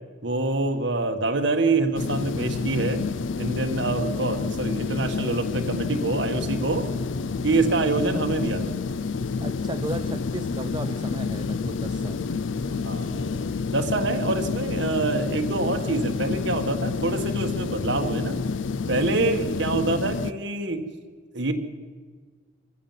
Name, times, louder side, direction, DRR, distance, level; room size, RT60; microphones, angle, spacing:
voice 1, 0.2-3.0 3.4-6.9 7.4-8.8 12.8-13.4 13.7-18.4 18.9-20.9 21.3-21.5, right 3 dB, 60° right, 5 dB, 1.7 m, -26 dB
sound 1, 1.9-20.3, left 4 dB, 70° left, 0.5 m, -29 dB
voice 2, 9.4-12.2, right 2 dB, 25° right, 6 dB, 0.6 m, -35 dB
24.5 x 15.0 x 7.5 m, 1.5 s
head